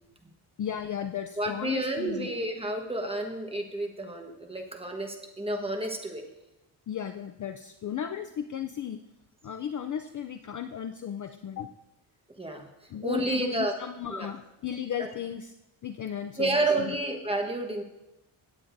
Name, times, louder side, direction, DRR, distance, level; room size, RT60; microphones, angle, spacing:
voice 1, 0.6-2.3 6.9-9.0 9.4-11.7 12.9-15.5 15.8-17.0, left 9 dB, 40° left, 6 dB, 0.4 m, -35 dB
voice 2, 1.4-6.2 12.4-12.6 13.0-13.7 14.1-14.3 16.4-17.8, right 2 dB, 10° right, 3 dB, 1.2 m, -30 dB
17.0 x 8.6 x 2.6 m, 0.93 s
cardioid pair, 130°, 50 cm